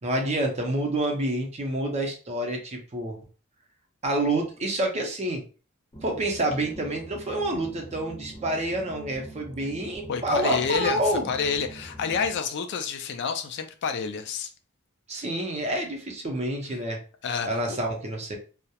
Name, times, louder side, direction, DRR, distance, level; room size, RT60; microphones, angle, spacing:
voice 1, 0.0-3.2 4.0-5.4 6.0-11.3 15.1-17.0 17.5-18.4, right 1 dB, 30° right, 0.6 m, -28 dB
sound 1, 5.9-12.4, right 1 dB, 20° left, 0.7 m, -44 dB
voice 2, 10.1-11.0 11.3-14.5 17.2-17.8, left 6 dB, 55° left, 0.3 m, -29 dB
2.3 x 2.0 x 2.7 m
head